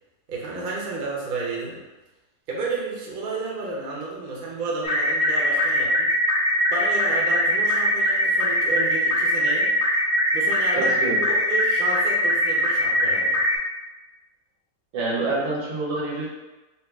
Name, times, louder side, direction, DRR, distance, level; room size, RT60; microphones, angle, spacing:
voice 1, 0.3-1.8 2.5-6.1 6.7-9.7 10.3-10.9 11.3-13.4, right 3 dB, 45° right, -4 dB, 0.7 m, -31 dB
sound 1, 4.8-13.6, equal, 65° left, 0.5 m, -22 dB
voice 2, 10.7-11.2 14.9-16.3, right 2 dB, 80° right, -4 dB, 1.8 m, -26 dB
4.5 x 2.3 x 3.5 m, 1.1 s
omnidirectional pair, 2.0 m